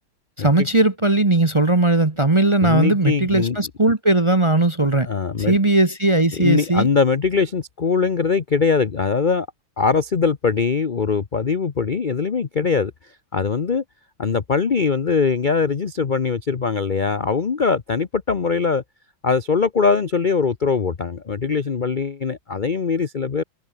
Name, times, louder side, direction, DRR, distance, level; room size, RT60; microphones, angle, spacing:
voice 1, 0.4-5.1 5.4-6.9, right 2 dB, 20° right, 0.8 m, -18 dB
voice 2, 2.6-3.6 5.0-5.6 6.3-9.5 9.8-12.9 13.3-13.8 14.2-18.8 19.2-23.4, left 5 dB, 55° left, 0.5 m, -21 dB
omnidirectional pair, 2.2 m